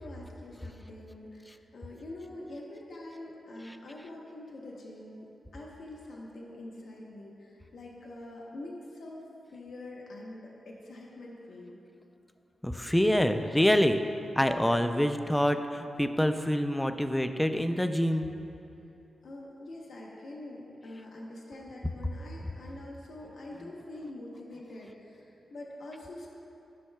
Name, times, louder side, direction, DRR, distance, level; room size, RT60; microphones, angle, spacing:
voice 1, 0.0-5.3 5.5-11.8 19.2-26.3, left 1 dB, 70° left, -2 dB, 0.8 m, -45 dB
voice 2, 12.6-14.0 14.4-18.3, equal, 5° left, 8 dB, 0.3 m, -26 dB
12.5 x 5.6 x 2.2 m, 2.9 s
wide cardioid pair, 105°, 0 cm